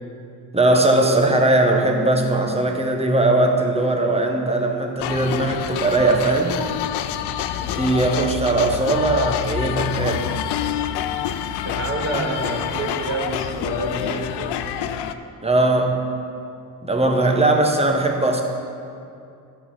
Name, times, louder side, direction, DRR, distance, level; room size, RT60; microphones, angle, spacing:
voice 1, 0.5-6.6 7.6-10.3 15.4-16.0 16.8-18.4, right 2 dB, 15° right, 3 dB, 1.4 m, -19 dB
sound 1, 5.0-15.1, left 10 dB, 90° left, 0.5 m, -27 dB
voice 2, 11.6-14.6, right 2 dB, 45° right, 0 dB, 2.1 m, -28 dB
12.0 x 5.8 x 5.7 m, 2.5 s
supercardioid pair, 55°, 39 cm